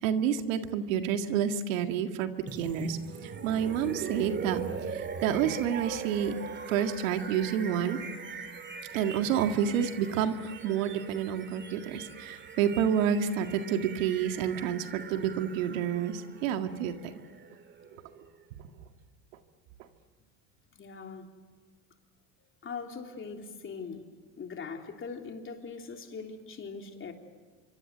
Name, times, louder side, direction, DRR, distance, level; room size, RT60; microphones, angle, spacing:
voice 1, 0.0-4.6 4.9-6.3 6.7-8.0 8.9-17.1, right 8 dB, 85° right, 7 dB, 2.0 m, -29 dB
sound 1, 2.5-18.3, right 5 dB, 30° right, 2.5 m, -41 dB
voice 2, 20.7-21.3 22.6-24.0 24.4-27.1, left 5 dB, 30° left, 3 dB, 3.4 m, -41 dB
26.0 x 24.5 x 8.0 m, 1.4 s
supercardioid pair, 105°, 38 cm